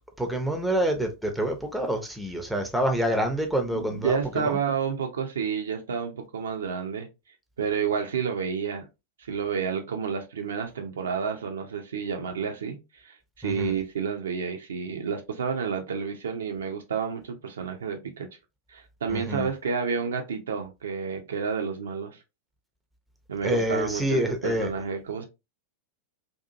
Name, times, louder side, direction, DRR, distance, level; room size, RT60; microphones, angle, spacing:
voice 1, 0.2-4.6 13.4-13.7 19.1-19.5 23.4-24.7, right 1 dB, 5° right, 0.5 m, -27 dB
voice 2, 3.7-7.1 7.6-8.9 9.3-18.3 18.7-22.2 23.3-25.3, right 6 dB, 65° right, 0.5 m, -30 dB
2.6 x 2.4 x 2.5 m
figure-of-eight pair, 90°, 0 cm